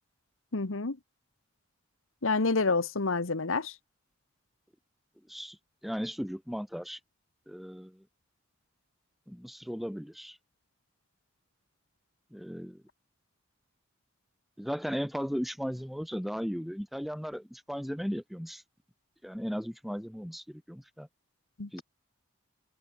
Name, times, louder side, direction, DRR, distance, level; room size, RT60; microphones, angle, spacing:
voice 1, 0.5-1.0 2.2-3.7 21.6-21.8, left 3 dB, 80° left, 1.2 m, -28 dB
voice 2, 5.3-5.6 5.8-7.0 7.5-8.1 9.3-10.4 12.3-12.8 14.6-18.6 19.2-21.1 21.7-21.8, equal, ahead, 4.5 m, -36 dB
head